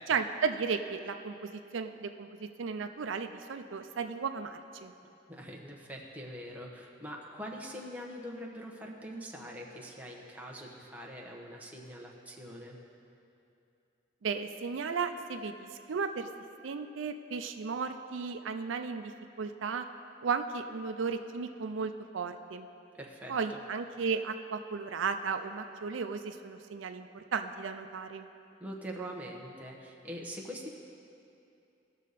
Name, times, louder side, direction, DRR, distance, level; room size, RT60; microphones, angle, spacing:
voice 1, 0.1-4.9 14.2-16.3 16.6-19.1 19.4-19.9 20.2-22.7 23.3-28.3, right 5 dB, 85° right, 8 dB, 0.5 m, -35 dB
voice 2, 5.3-12.8 22.9-23.6 28.6-30.7, equal, 10° right, -2 dB, 1.0 m, -43 dB
17.5 x 6.4 x 4.1 m, 2.7 s
head